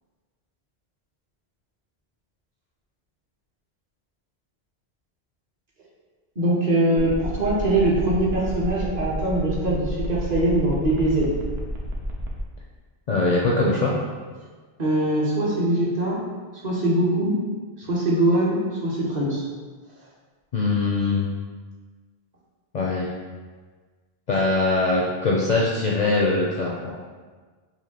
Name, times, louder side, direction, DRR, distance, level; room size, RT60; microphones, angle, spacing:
voice 1, 6.4-11.3 14.8-16.2 16.6-17.4 17.8-19.4, right 1 dB, 45° right, -6 dB, 0.8 m, -22 dB
sound 1, 7.0-12.4, equal, 75° right, 0.9 m, -32 dB
voice 2, 13.1-13.9 20.5-21.3 22.7-23.1 24.3-26.9, left 3 dB, 55° left, -4 dB, 0.5 m, -22 dB
4.3 x 2.6 x 2.8 m, 1.4 s
omnidirectional pair, 1.1 m